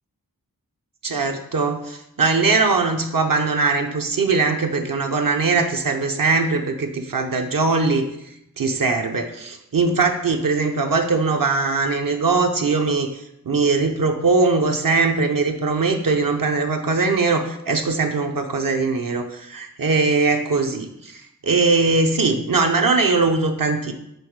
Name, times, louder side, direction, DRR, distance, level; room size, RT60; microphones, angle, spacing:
voice 1, 1.0-8.0 8.6-23.9, right 4 dB, 65° right, 4 dB, 0.7 m, -21 dB
6.8 x 3.5 x 4.6 m, 0.81 s
wide cardioid pair, 65°, 37 cm